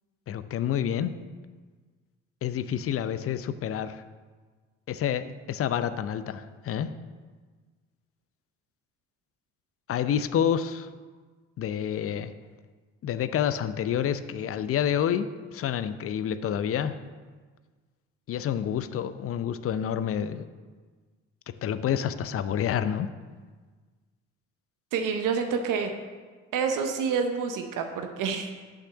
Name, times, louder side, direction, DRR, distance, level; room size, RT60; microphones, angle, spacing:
voice 1, 0.3-1.1 2.4-4.0 4.9-6.9 9.9-10.9 11.6-12.3 13.0-16.9 18.3-20.4 21.6-23.1, left 9 dB, 35° left, 12 dB, 0.6 m, -28 dB
voice 2, 24.9-25.9 26.5-28.5, right 6 dB, 55° right, 6 dB, 0.9 m, -28 dB
6.4 x 5.9 x 7.0 m, 1.4 s
figure-of-eight pair, 45°, 38 cm